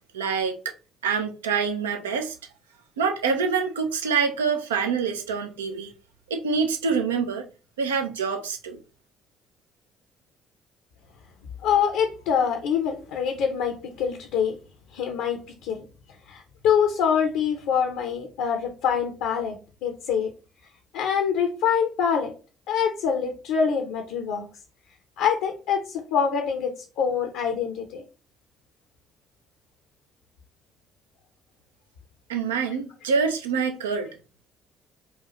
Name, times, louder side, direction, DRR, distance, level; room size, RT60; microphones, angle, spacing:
voice 1, 0.1-0.7 1.0-2.4 3.0-5.9 6.3-7.5 7.8-8.8 32.3-34.1, right 5 dB, 80° right, 0.5 m, -26 dB
voice 2, 11.6-14.6 14.9-15.8 16.3-19.6 19.8-20.3 20.9-22.3 22.7-24.5 25.2-28.0, left 7 dB, 65° left, 0.5 m, -25 dB
4.1 x 2.3 x 2.9 m
figure-of-eight pair, 50°, 0 cm